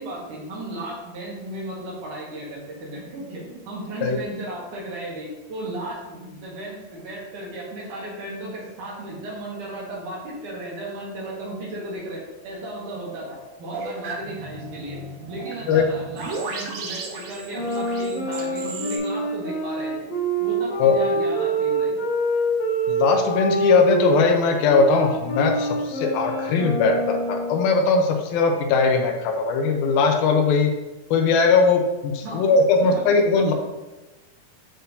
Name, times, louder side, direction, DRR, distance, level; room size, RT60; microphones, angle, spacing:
voice 1, 0.0-15.0 15.3-20.1 20.4-22.0 32.2-33.0 33.3-33.5, right 1 dB, 65° right, -4 dB, 2.8 m, -35 dB
sound 1, 13.7-19.0, right 3 dB, 90° right, 1.4 m, -35 dB
sound 2, 17.5-24.2 24.7-27.6, right 2 dB, 65° left, 1.1 m, -26 dB
voice 2, 22.9-30.7 31.1-33.5, left 4 dB, 85° left, 3 dB, 2.5 m, -19 dB
9.4 x 4.3 x 2.6 m, 1.1 s
omnidirectional pair, 4.2 m